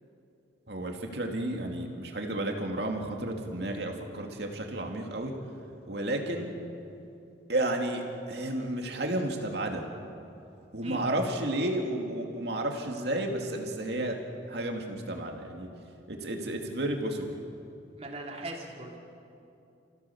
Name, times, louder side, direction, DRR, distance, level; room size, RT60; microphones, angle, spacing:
voice 1, 0.7-5.3 5.9-6.5 7.5-9.8 10.7-14.2 14.5-15.7 16.1-17.4, right 1 dB, 60° right, 2 dB, 2.6 m, -32 dB
voice 2, 18.0-19.0, right 2 dB, 35° right, 0 dB, 3.0 m, -39 dB
29.5 x 16.0 x 7.2 m, 2.7 s
head